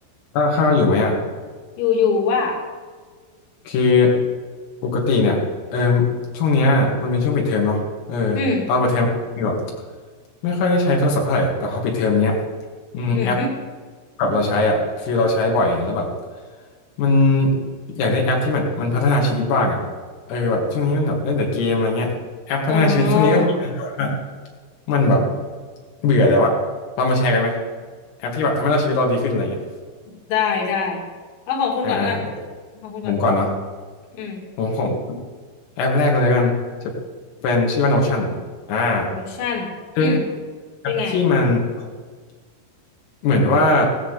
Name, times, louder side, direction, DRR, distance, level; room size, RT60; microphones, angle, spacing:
voice 1, 0.3-1.2 3.7-4.2 4.8-5.4 5.7-8.4 8.7-9.1 9.4-9.6 10.4-12.4 12.9-13.4 14.2-16.1 17.0-17.6 17.9-19.8 20.3-22.1 22.5-24.2 24.9-25.3 26.0-26.6 27.0-27.6 28.2-29.6 31.8-32.2 33.0-33.5 34.6-35.0 35.8-36.6 37.4-38.3 38.7-39.1 40.0-40.1 40.8-41.9 43.2-43.9, left 2 dB, 80° left, -1 dB, 4.9 m, -19 dB
voice 2, 1.8-2.6 8.4-8.7 13.1-13.5 22.7-23.5 30.3-31.0 31.5-32.3 32.8-33.1 34.1-34.4 39.1-40.2 40.9-41.2, left 5 dB, 60° left, 0 dB, 4.5 m, -23 dB
17.0 x 10.0 x 8.3 m, 1.5 s
omnidirectional pair, 5.9 m